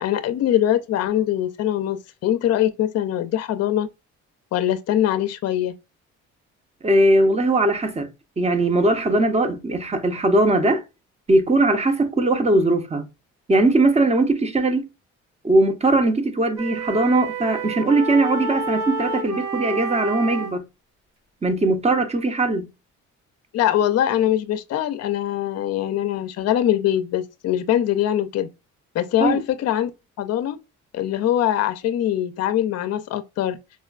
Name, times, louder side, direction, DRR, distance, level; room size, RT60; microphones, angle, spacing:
voice 1, 0.0-3.9 4.5-5.7 23.5-28.5 28.9-29.9 30.2-30.6 30.9-33.6, left 11 dB, 55° left, 0.5 m, -22 dB
voice 2, 6.8-8.1 8.4-10.8 11.3-13.1 13.5-14.9 15.4-20.6 21.4-22.7 29.2-29.4, right 2 dB, 20° right, 0.7 m, -20 dB
sound 1, 16.6-20.5, right 3 dB, 85° right, 1.2 m, -29 dB
4.2 x 2.2 x 2.3 m
cardioid pair, 90°, 30 cm